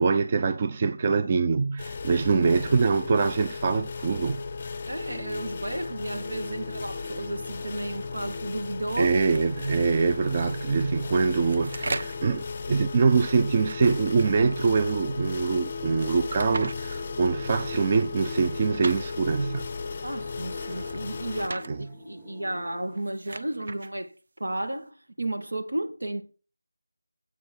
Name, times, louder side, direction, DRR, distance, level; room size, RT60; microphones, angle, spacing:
voice 1, 0.0-4.4 9.0-19.7 21.7-21.8, right 4 dB, 25° right, 0.4 m, -24 dB
sound 1, 1.8-21.5, left 4 dB, 30° left, 0.6 m, -36 dB
sound 2, 4.5-23.0, left 6 dB, 10° right, 1.0 m, -48 dB
voice 2, 4.9-9.2 20.0-24.1 24.4-26.2, right 1 dB, 75° right, 2.0 m, -33 dB
sound 3, 9.3-9.8 10.9-12.3 13.5-14.8 16.0-16.8 18.2-19.0 20.5-21.7 22.8-23.9, right 2 dB, 45° right, 0.8 m, -39 dB
8.0 x 6.7 x 6.2 m
figure-of-eight pair, 165°, 0 cm